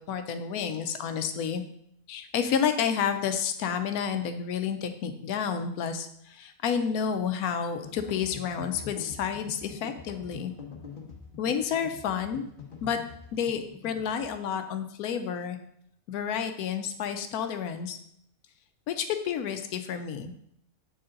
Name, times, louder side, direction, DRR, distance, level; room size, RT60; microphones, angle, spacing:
voice 1, 0.0-1.6 2.1-10.5 11.4-12.5 12.8-13.0 13.3-15.6 16.1-18.0 18.9-20.3, left 7 dB, 80° left, 8 dB, 1.1 m, -30 dB
sound 1, 7.8-14.3, left 5 dB, 40° left, 1.2 m, -45 dB
7.7 x 4.1 x 3.8 m, 0.71 s
omnidirectional pair, 1.6 m